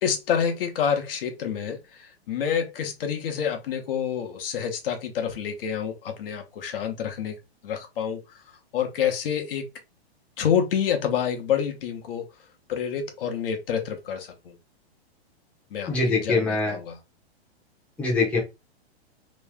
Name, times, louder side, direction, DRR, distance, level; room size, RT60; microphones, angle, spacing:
voice 1, 0.0-7.4 7.6-8.4 8.7-9.7 10.4-12.3 12.7-14.6 15.7-17.0, left 8 dB, 55° left, 0.9 m, -28 dB
voice 2, 15.9-16.8 18.0-18.4, left 3 dB, 5° left, 0.8 m, -23 dB
3.1 x 2.7 x 3.4 m
hypercardioid pair, 160°, 33 cm